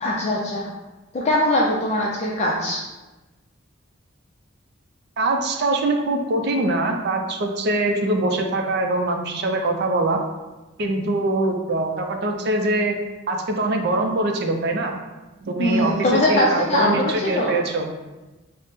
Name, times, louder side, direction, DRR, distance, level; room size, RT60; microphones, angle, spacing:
voice 1, 0.0-0.7 1.1-2.8 15.6-17.6, left 1 dB, 35° left, -4 dB, 0.4 m, -21 dB
voice 2, 5.2-10.2 10.8-13.0 13.3-14.9 15.4-17.9, right 2 dB, 55° right, 3 dB, 0.4 m, -23 dB
3.5 x 2.0 x 4.1 m, 1.1 s
head